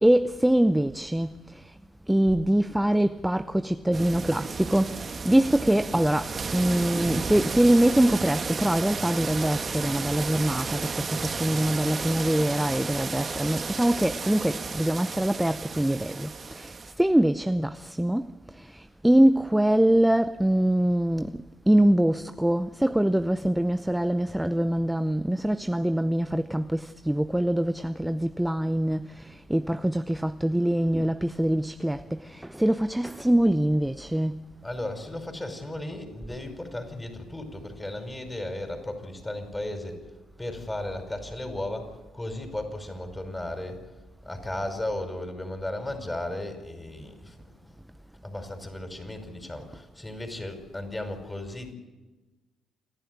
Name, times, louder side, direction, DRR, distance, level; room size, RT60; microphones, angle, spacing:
voice 1, 0.0-1.7 2.1-34.4, right 1 dB, 5° right, 0.7 m, -24 dB
sound 1, 3.9-16.9, right 5 dB, 40° right, 1.5 m, -33 dB
voice 2, 34.6-40.0 40.4-43.8 44.2-47.4 47.6-47.7 48.2-51.7, left 1 dB, 15° left, 5.4 m, -35 dB
28.5 x 11.5 x 9.7 m
hypercardioid pair, 50°, 0 cm